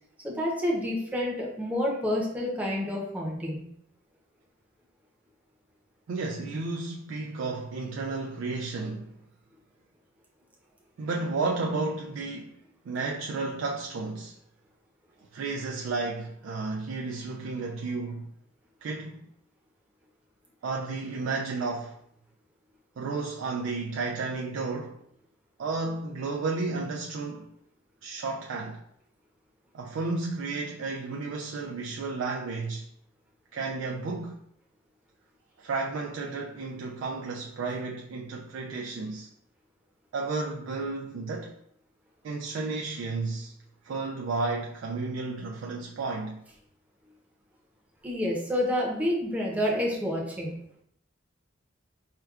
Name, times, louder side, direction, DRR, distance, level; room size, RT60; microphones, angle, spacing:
voice 1, 0.2-3.6 48.0-50.5, left 1 dB, 10° right, 0.7 m, -28 dB
voice 2, 6.1-9.1 11.0-12.6 12.9-14.4 15.3-18.3 18.8-19.3 20.6-22.0 23.0-25.0 25.6-27.5 28.0-28.8 29.7-32.9 33.5-34.4 35.6-39.3 40.1-41.6 42.2-43.5 43.8-46.4, right 3 dB, 80° right, 0.3 m, -32 dB
4.5 x 2.2 x 2.3 m
head